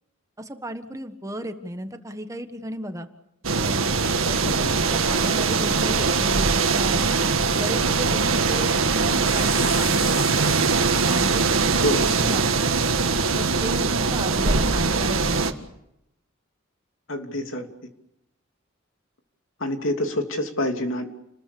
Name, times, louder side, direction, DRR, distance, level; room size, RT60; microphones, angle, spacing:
voice 1, 0.4-3.1 3.6-7.1 7.5-10.5 11.1-12.8 13.3-15.5, equal, 15° right, 8 dB, 1.5 m, -34 dB
sound 1, 3.4-15.5, right 4 dB, 90° right, 1.9 m, -22 dB
voice 2, 4.4-4.7 11.8-12.0 17.1-17.7 19.6-21.0, left 1 dB, 75° left, 5 dB, 3.0 m, -27 dB
sound 2, 9.2-11.5 12.0-12.7, left 5 dB, 30° left, 2.4 m, -39 dB
30.0 x 21.0 x 7.0 m, 0.82 s
head